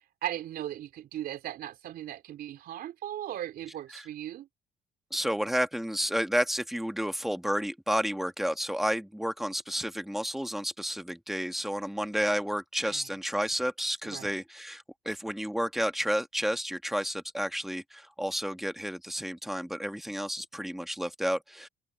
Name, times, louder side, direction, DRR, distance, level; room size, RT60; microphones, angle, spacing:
voice 1, 0.2-4.5 12.8-13.1 14.0-14.4, right 12 dB, 65° right, 3.6 m, -38 dB
voice 2, 5.1-21.7, equal, ahead, 1.6 m, -31 dB
open air
cardioid pair, 110°, 17 cm